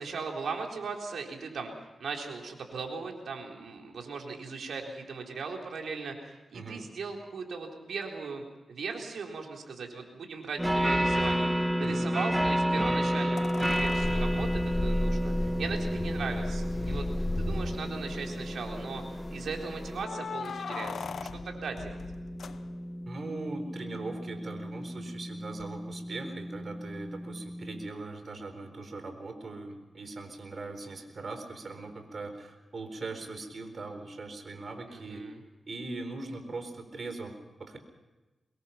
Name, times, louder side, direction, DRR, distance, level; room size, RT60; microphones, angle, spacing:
voice 1, 0.0-17.1 17.4-19.0 19.3-21.1 21.4-22.0 34.9-35.4, right 4 dB, 80° right, 1 dB, 4.0 m, -38 dB
sound 1, 10.6-27.9, equal, 10° right, 1.4 m, -32 dB
sound 2, 13.4-15.8 16.7-16.8 17.1-17.2 17.8-18.2 19.9-23.1 25.6-25.7, left 6 dB, 75° left, 0.8 m, -41 dB
sound 3, 13.7-20.0, left 1 dB, 30° left, 1.3 m, -34 dB
voice 2, 23.1-35.3 35.7-37.8, right 3 dB, 55° right, 7 dB, 4.3 m, -40 dB
24.0 x 22.0 x 5.8 m, 1.1 s
cardioid pair, 70°, 0 cm